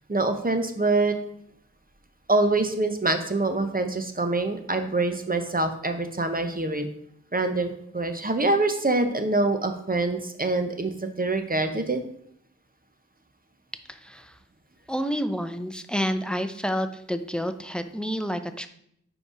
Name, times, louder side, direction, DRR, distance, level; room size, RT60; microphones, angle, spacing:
voice 1, 0.1-1.1 2.3-6.9 7.3-12.0, right 2 dB, 25° right, 7 dB, 0.9 m, -25 dB
voice 2, 13.9-14.3 14.9-18.7, equal, 5° left, 9 dB, 0.6 m, -29 dB
5.0 x 4.8 x 4.9 m, 0.70 s
wide cardioid pair, 40°, 32 cm